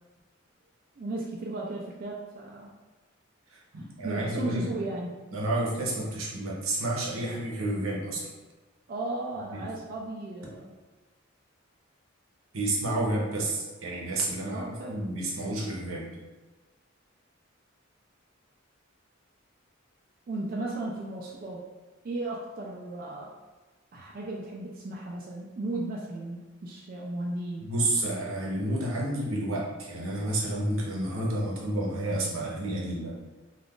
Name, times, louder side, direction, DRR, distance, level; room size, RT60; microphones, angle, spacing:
voice 1, 1.0-2.7 3.8-5.2 8.9-10.7 14.4-15.1 20.3-21.7 22.0-23.4 23.9-27.7, right 2 dB, 45° right, -2 dB, 0.3 m, -35 dB
voice 2, 3.5-4.6 5.3-8.3 9.5-9.7 12.5-16.1 27.6-33.2, right 1 dB, 85° right, -3 dB, 0.8 m, -30 dB
2.4 x 2.4 x 3.6 m, 1.2 s
head